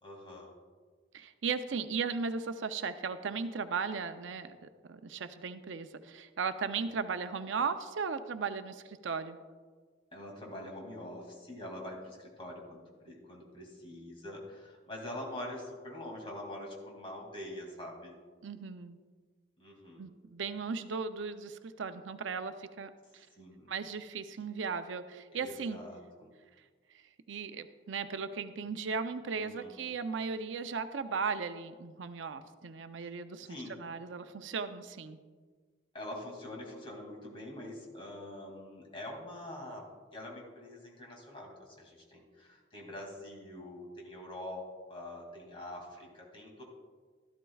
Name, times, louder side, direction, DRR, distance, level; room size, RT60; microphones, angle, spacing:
voice 1, 0.0-0.5 10.1-18.2 19.6-20.1 23.4-23.7 24.4-24.5 25.3-26.3 29.3-29.8 33.4-33.8 35.9-39.9 40.1-44.6 44.9-46.6, left 1 dB, 30° left, -1 dB, 2.4 m, -45 dB
voice 2, 1.1-9.4 18.4-19.0 20.0-23.3 23.7-25.8 27.3-35.2, right 5 dB, 85° right, 10 dB, 0.5 m, -37 dB
13.0 x 12.5 x 2.3 m, 1.5 s
head